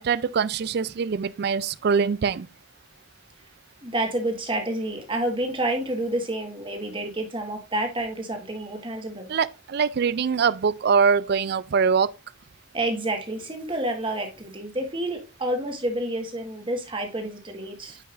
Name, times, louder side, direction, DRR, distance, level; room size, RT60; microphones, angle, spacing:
voice 1, 0.0-2.5 9.3-12.1, right 6 dB, 50° right, 0.3 m, -23 dB
voice 2, 3.8-9.3 12.7-18.0, right 1 dB, 25° right, 1.6 m, -29 dB
9.4 x 5.4 x 2.5 m
head